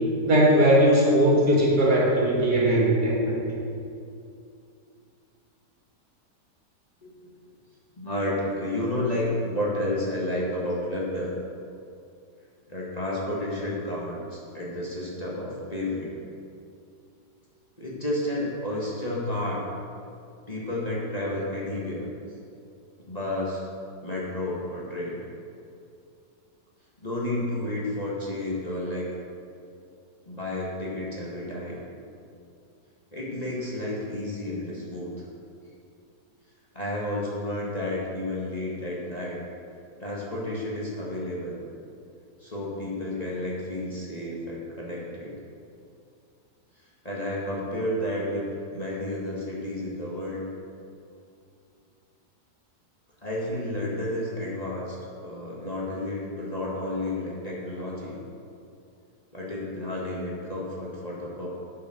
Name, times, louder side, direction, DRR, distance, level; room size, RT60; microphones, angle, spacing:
voice 1, 0.2-3.4, right 1 dB, 70° right, -5 dB, 3.0 m, -19 dB
voice 2, 8.0-11.3 12.7-16.1 17.8-19.7 20.5-22.1 23.1-23.6 24.0-25.2 27.0-29.0 30.2-31.8 33.1-35.1 36.7-39.4 40.0-41.6 42.4-45.4 47.0-50.4 53.2-55.0 55.2-58.2 59.3-61.5, left 1 dB, 25° left, -5 dB, 1.7 m, -31 dB
9.6 x 7.0 x 6.3 m, 2.5 s
omnidirectional pair, 1.8 m